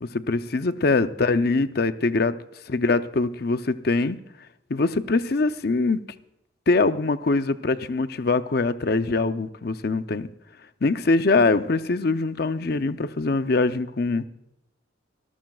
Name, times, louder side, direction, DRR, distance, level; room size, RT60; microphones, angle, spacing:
voice 1, 0.0-2.4 2.7-4.2 4.7-6.1 6.7-10.3 10.8-14.3, left 3 dB, 55° left, 11 dB, 0.6 m, -23 dB
26.0 x 13.5 x 2.4 m, 0.86 s
head